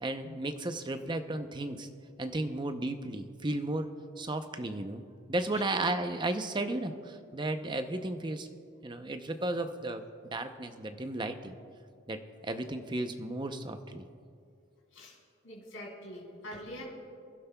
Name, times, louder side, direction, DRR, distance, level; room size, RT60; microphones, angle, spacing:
voice 1, 0.0-1.9 2.2-3.9 4.2-5.0 5.3-8.5 8.8-11.6 12.1-14.1, right 2 dB, 25° right, 7 dB, 0.6 m, -34 dB
voice 2, 15.4-16.8, left 1 dB, 75° left, -3 dB, 3.1 m, -44 dB
25.5 x 11.5 x 2.3 m, 2.3 s
head